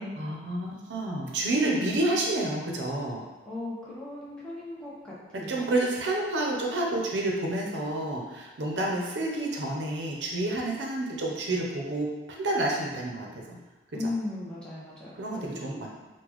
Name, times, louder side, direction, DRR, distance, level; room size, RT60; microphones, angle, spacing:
voice 1, 0.2-3.2 5.3-13.6 14.0-14.1 15.2-15.9, right 2 dB, 85° right, -1 dB, 0.6 m, -29 dB
voice 2, 3.5-5.7 13.9-15.9, left 2 dB, 5° left, -9 dB, 0.8 m, -37 dB
3.8 x 2.2 x 3.0 m, 1.2 s
head